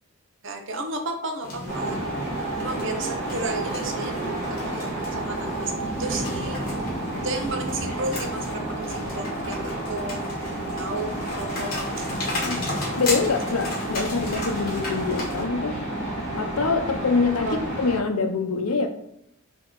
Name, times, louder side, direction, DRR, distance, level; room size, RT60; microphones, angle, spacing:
voice 1, 0.4-2.0 2.6-4.2 4.5-5.7 6.0-6.7 7.2-10.2 10.7-12.1 17.4-17.6, right 2 dB, 55° right, 4 dB, 0.7 m, -33 dB
sound 1, 1.4-15.4, left 2 dB, 40° left, 1.5 m, -35 dB
sound 2, 1.7-18.0, right 1 dB, 10° left, 1.6 m, -30 dB
voice 2, 12.4-12.7 13.0-15.8 16.4-18.9, left 4 dB, 75° left, 6 dB, 0.6 m, -25 dB
4.6 x 2.9 x 3.8 m, 0.77 s
head